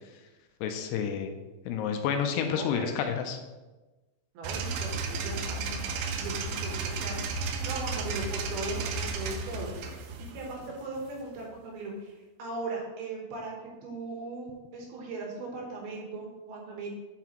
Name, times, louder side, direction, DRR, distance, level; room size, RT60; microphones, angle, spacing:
voice 1, 0.6-1.3 1.7-3.4, left 7 dB, 85° left, 5 dB, 2.6 m, -29 dB
voice 2, 2.5-2.9 4.3-7.4 7.6-9.7 10.2-16.9, right 2 dB, 70° right, -1 dB, 2.9 m, -38 dB
sound 1, 4.4-11.4, right 4 dB, 85° right, 2.1 m, -33 dB
9.1 x 5.8 x 3.0 m, 1.2 s
omnidirectional pair, 5.0 m